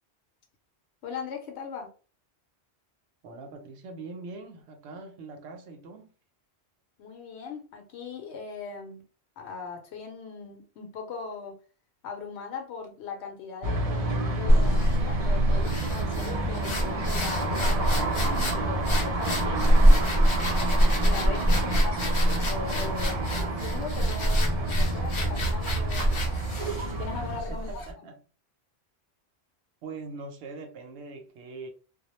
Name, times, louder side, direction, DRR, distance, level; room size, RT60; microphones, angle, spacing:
voice 1, 1.0-1.9 7.0-9.0 9.4-11.6 12.0-19.6 21.0-26.6 27.0-27.8, left 5 dB, 85° left, 0.9 m, -39 dB
voice 2, 3.2-6.1 27.5-28.2 29.8-31.7, right 3 dB, 80° right, 0.9 m, -42 dB
sound 1, 13.6-27.4, right 2 dB, 50° right, 0.5 m, -30 dB
sound 2, 14.5-27.9, equal, 40° left, 0.4 m, -25 dB
2.2 x 2.0 x 2.9 m
omnidirectional pair, 1.1 m